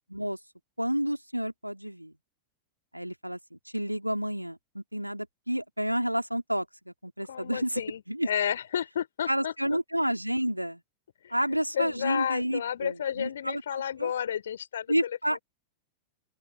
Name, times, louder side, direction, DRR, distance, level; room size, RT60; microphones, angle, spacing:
voice 1, 0.8-2.1 2.9-7.8 8.1-8.3 9.3-10.8 11.3-14.1 14.9-15.4, equal, 90° right, 3.1 m, -30 dB
voice 2, 7.3-9.8 11.2-11.3 11.7-15.4, left 9 dB, 65° left, 4.0 m, -32 dB
open air
figure-of-eight pair, 90°, 0 cm